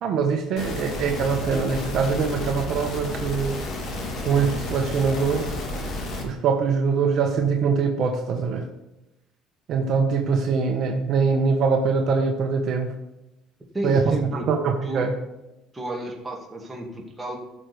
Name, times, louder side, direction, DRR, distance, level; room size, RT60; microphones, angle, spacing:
voice 1, 0.0-3.6 4.2-5.5 6.2-8.7 9.7-12.9 13.8-14.1 14.4-15.2, right 5 dB, 55° right, 3 dB, 1.3 m, -23 dB
sound 1, 0.6-6.2, left 2 dB, 50° left, 2.7 m, -31 dB
voice 2, 13.7-14.4 14.8-15.1 15.7-17.4, right 1 dB, 10° right, -1 dB, 2.1 m, -31 dB
15.0 x 6.4 x 3.4 m, 0.94 s
cardioid pair, 140°, 0 cm